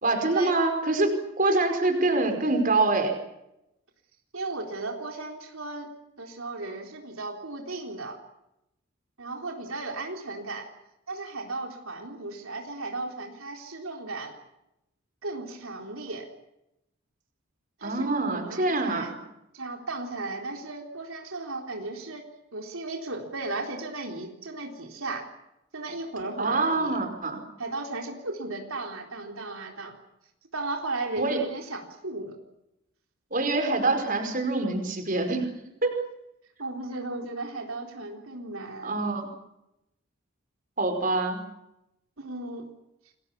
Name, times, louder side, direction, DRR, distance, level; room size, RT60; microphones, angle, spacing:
voice 1, 0.0-3.1 17.8-19.1 26.4-27.4 31.2-31.4 33.3-35.5 35.8-35.9 38.8-39.3 40.8-41.4, right 2 dB, 40° right, 5 dB, 5.0 m, -25 dB
voice 2, 4.3-5.9 6.2-8.2 9.2-10.7 11.1-14.3 15.2-16.3 17.8-19.1 19.5-22.2 22.5-25.3 25.7-27.0 27.6-30.0 30.5-32.3 36.6-38.9 42.2-42.7, right 2 dB, 85° right, 2 dB, 4.0 m, -35 dB
29.0 x 21.5 x 7.2 m, 0.85 s
head